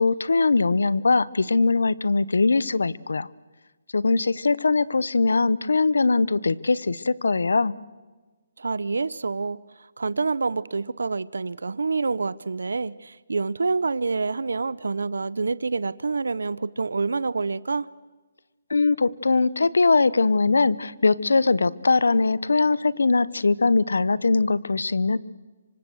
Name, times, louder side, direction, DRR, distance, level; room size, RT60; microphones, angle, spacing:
voice 1, 0.0-3.3 3.9-7.7 18.7-25.2, left 3 dB, 90° left, 20 dB, 1.0 m, -21 dB
voice 2, 8.6-9.6 10.0-17.9, right 4 dB, 85° right, 19 dB, 0.7 m, -27 dB
26.5 x 25.0 x 6.5 m, 1.3 s
hypercardioid pair, 155°, 0 cm